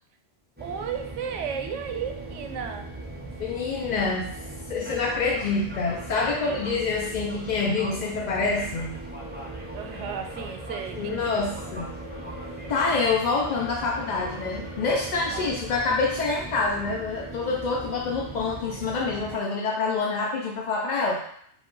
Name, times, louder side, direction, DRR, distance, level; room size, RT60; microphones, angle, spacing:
sound 1, 0.6-19.3, right 2 dB, 15° right, 0.4 m, -39 dB
voice 1, 0.6-2.9 6.4-6.7 9.7-11.3 15.3-15.5 19.4-19.5, right 7 dB, 80° right, 5 dB, 0.9 m, -34 dB
voice 2, 3.4-4.3 4.7-9.0 11.0-12.0 12.7-21.2, left 4 dB, 55° left, -1 dB, 0.5 m, -26 dB
sound 2, 9.2-16.3, left 1 dB, 35° left, 1.9 m, -45 dB
5.1 x 2.3 x 3.7 m, 0.66 s
omnidirectional pair, 1.2 m